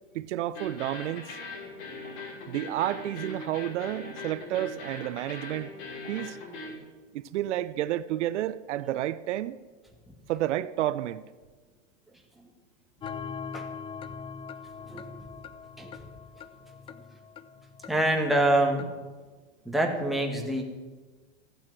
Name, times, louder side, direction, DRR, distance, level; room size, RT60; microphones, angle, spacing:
voice 1, 0.1-1.4 2.5-5.7 6.1-6.4 7.1-9.6 10.3-11.2, right 13 dB, 70° right, 0.7 m, -30 dB
sound 1, 0.5-6.7, left 2 dB, 60° left, 5.9 m, -40 dB
sound 2, 13.0-19.0, left 6 dB, 15° left, 0.5 m, -42 dB
voice 2, 14.9-15.3 15.8-16.0 17.9-18.9 19.7-20.6, right 1 dB, ahead, 1.8 m, -26 dB
15.0 x 9.0 x 7.8 m
supercardioid pair, 140°, 36 cm